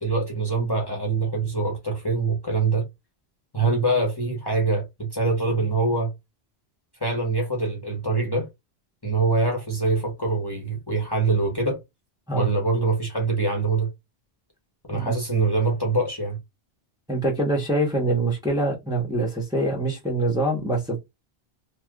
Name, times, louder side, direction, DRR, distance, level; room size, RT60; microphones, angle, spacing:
voice 1, 0.0-2.9 3.5-6.1 7.0-8.5 9.0-11.8 12.4-13.9 14.9-16.4, right 3 dB, 25° left, 0.9 m, -24 dB
voice 2, 17.1-21.0, right 2 dB, 5° right, 0.9 m, -24 dB
3.2 x 2.8 x 2.3 m
omnidirectional pair, 1.1 m